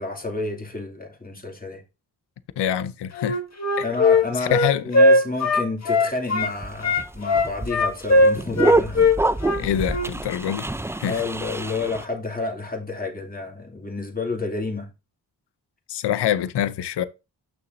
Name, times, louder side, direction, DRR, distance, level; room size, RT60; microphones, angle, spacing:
voice 1, 0.0-1.8 3.8-9.1 11.1-14.9, left 3 dB, 20° left, 2.5 m, -30 dB
voice 2, 2.6-3.4 3.8-3.9 4.4-4.8 9.5-10.7 11.0-11.2 15.9-17.0, left 10 dB, 70° left, 0.7 m, -25 dB
Wind instrument woodwind instrument, 3.1-6.5 6.8-10.1, left 2 dB, 40° left, 1.7 m, -19 dB
sound 1, 6.4-12.0, right 2 dB, 5° right, 0.4 m, -26 dB
8.6 x 6.4 x 2.6 m
cardioid pair, 60°, 42 cm